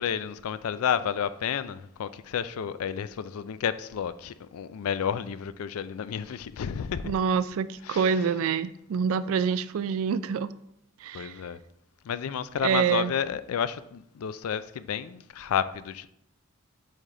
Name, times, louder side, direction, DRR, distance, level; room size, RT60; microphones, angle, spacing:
voice 1, 0.0-7.1 7.8-8.1 11.1-11.6 12.0-16.1, left 8 dB, 80° left, 0.4 m, -31 dB
voice 2, 7.0-10.5 11.0-11.4 12.6-13.1, right 6 dB, 75° right, 0.3 m, -26 dB
8.4 x 3.4 x 3.7 m
head